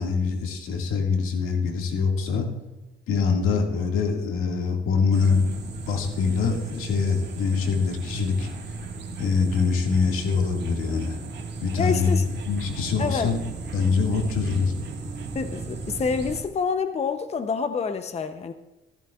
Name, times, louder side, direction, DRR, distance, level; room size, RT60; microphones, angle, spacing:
voice 1, 0.0-2.5 3.1-5.4 5.9-8.5 9.2-11.2 11.6-12.2 12.4-13.4 13.7-14.7, left 5 dB, 90° left, 1 dB, 2.0 m, -24 dB
sound 1, 5.1-16.4, right 3 dB, 55° right, 1.8 m, -36 dB
voice 2, 11.8-12.3 13.0-13.3 15.3-18.5, left 5 dB, 30° left, 9 dB, 0.7 m, -27 dB
14.5 x 14.5 x 2.4 m, 1.0 s
cardioid pair, 105°, 21 cm